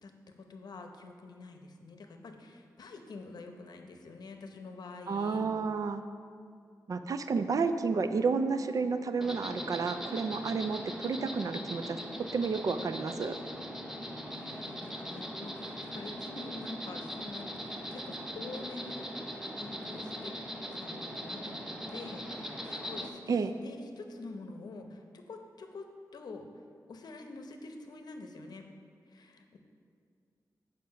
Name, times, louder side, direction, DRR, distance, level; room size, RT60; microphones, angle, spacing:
voice 1, 0.0-5.5 14.0-20.4 20.7-26.5 26.9-28.7 29.1-29.6, left 3 dB, 75° left, 5 dB, 0.7 m, -47 dB
voice 2, 5.1-6.0 6.9-12.0 12.3-13.4 23.3-23.5, right 4 dB, 55° right, 9 dB, 0.4 m, -31 dB
Insect, 9.2-23.1, equal, 5° right, 0.6 m, -40 dB
7.5 x 5.0 x 5.7 m, 2.2 s
wide cardioid pair, 150°, 7 cm